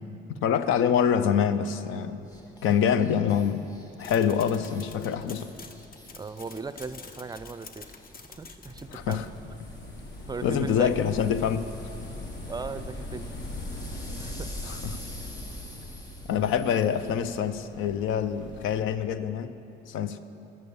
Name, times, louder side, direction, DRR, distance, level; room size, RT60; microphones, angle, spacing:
voice 1, 0.4-2.3 2.6-3.7 4.0-5.5 8.9-9.2 10.4-11.7 14.7-15.0 16.3-19.5 19.9-20.2, left 8 dB, 85° left, 12 dB, 0.6 m, -25 dB
sound 1, 2.2-17.7, left 1 dB, 20° left, 2.0 m, -50 dB
sound 2, 4.0-9.4, left 4 dB, 45° left, 0.9 m, -47 dB
voice 2, 6.1-7.9 8.4-9.2 10.3-11.0 12.5-13.3 13.9-14.5, right 4 dB, 20° right, 12 dB, 0.4 m, -37 dB
sound 3, 8.7-18.8, left 1 dB, 65° left, 1.4 m, -40 dB
11.0 x 8.1 x 7.0 m, 2.8 s
cardioid pair, 90°, 20 cm